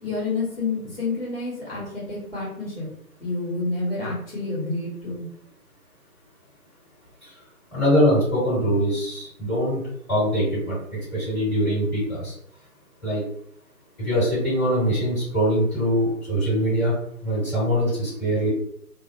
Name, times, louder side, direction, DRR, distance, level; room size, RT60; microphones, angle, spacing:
voice 1, 0.0-2.9 3.2-5.2, left 3 dB, 40° left, -7 dB, 1.0 m, -29 dB
voice 2, 7.7-9.8 10.1-10.8 11.1-12.3 13.0-13.2 14.0-16.9 17.2-18.5, equal, 5° left, -14 dB, 1.2 m, -22 dB
2.4 x 2.0 x 2.6 m, 0.69 s
figure-of-eight pair, 155°, 45 cm